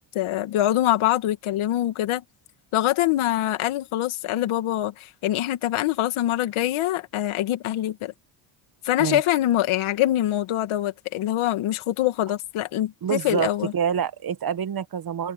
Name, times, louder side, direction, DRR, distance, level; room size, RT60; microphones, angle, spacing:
voice 1, 0.0-2.2 2.7-8.1 8.8-13.7, left 13 dB, 75° left, 2.2 m, -24 dB
voice 2, 13.0-15.3, right 8 dB, 45° right, 1.4 m, -27 dB
cardioid pair, 90°, 49 cm